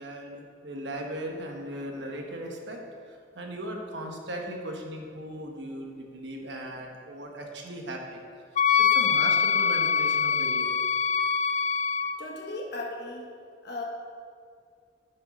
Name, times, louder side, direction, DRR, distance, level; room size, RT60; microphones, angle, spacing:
voice 1, 0.0-8.2 8.8-10.8, right 1 dB, 65° right, 2 dB, 1.2 m, -38 dB
Wind instrument woodwind instrument, 8.6-12.2, left 6 dB, 40° left, 0.3 m, -24 dB
voice 2, 12.2-13.2 13.6-13.8, left 2 dB, 60° left, -1 dB, 1.2 m, -36 dB
9.7 x 5.6 x 5.3 m, 2.2 s
head